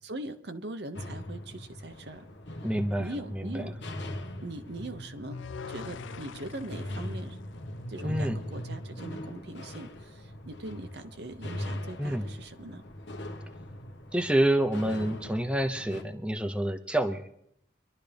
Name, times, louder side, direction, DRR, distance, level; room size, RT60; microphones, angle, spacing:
voice 1, 0.0-2.3 3.0-3.8 4.4-5.4 5.7-7.4 7.9-12.8, right 1 dB, 60° right, 8 dB, 0.9 m, -41 dB
sound 1, 0.9-16.0, left 1 dB, 70° left, 1.2 m, -40 dB
voice 2, 2.6-3.4 8.0-8.4 12.0-12.2 14.1-17.2, right 1 dB, 5° right, 6 dB, 0.7 m, -28 dB
sound 2, 5.3-8.5, left 5 dB, 85° left, 0.5 m, -44 dB
24.0 x 12.0 x 3.4 m, 0.73 s
head